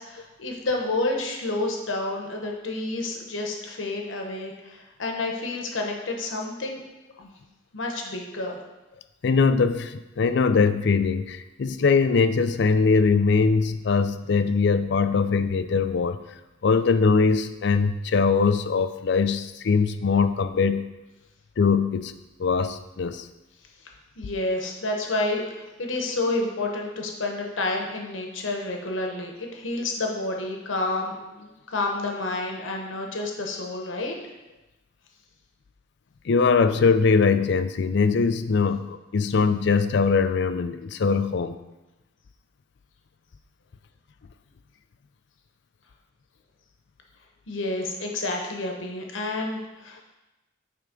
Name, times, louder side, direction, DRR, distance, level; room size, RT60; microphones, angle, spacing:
voice 1, 0.0-6.8 7.2-7.3 7.7-8.6 24.2-34.2 47.5-50.0, left 2 dB, 90° left, 1 dB, 0.9 m, -29 dB
voice 2, 9.2-16.2 16.6-20.8 21.6-22.1 22.4-23.3 36.3-41.6, left 5 dB, 65° left, 10 dB, 0.4 m, -21 dB
9.4 x 3.4 x 5.1 m, 1.0 s
head